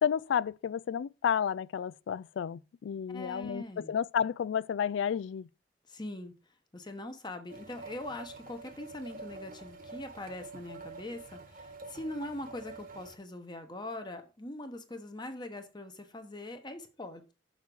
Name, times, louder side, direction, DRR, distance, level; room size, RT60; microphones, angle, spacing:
voice 1, 0.0-5.5, left 8 dB, 80° left, 0.3 m, -31 dB
voice 2, 3.1-3.9 5.9-6.3 6.7-17.3, left 1 dB, 25° left, 1.1 m, -42 dB
sound 1, 7.5-13.2, right 3 dB, 50° right, 1.3 m, -47 dB
6.5 x 4.7 x 6.8 m
head